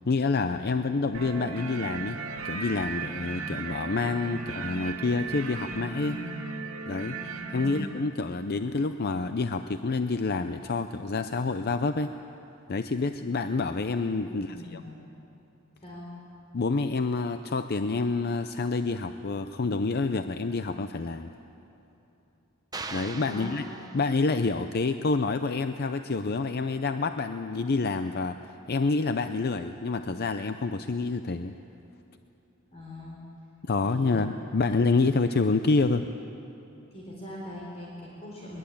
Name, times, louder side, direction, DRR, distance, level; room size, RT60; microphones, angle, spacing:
voice 1, 0.1-2.2 2.4-6.2 6.9-12.1 12.7-14.8 16.5-21.3 22.9-23.6 23.9-31.5 33.7-36.1, left 3 dB, 50° left, 9 dB, 0.6 m, -28 dB
sound 1, 1.1-7.8, right 4 dB, 70° right, 2.6 m, -36 dB
voice 2, 14.3-14.9 15.8-16.1 23.2-23.5 32.7-33.2 33.8-34.4 36.9-38.6, left 1 dB, 30° left, -3 dB, 4.1 m, -41 dB
sound 2, 22.7-24.5, right 3 dB, 20° right, 1.0 m, -40 dB
22.0 x 22.0 x 8.6 m, 3.0 s
head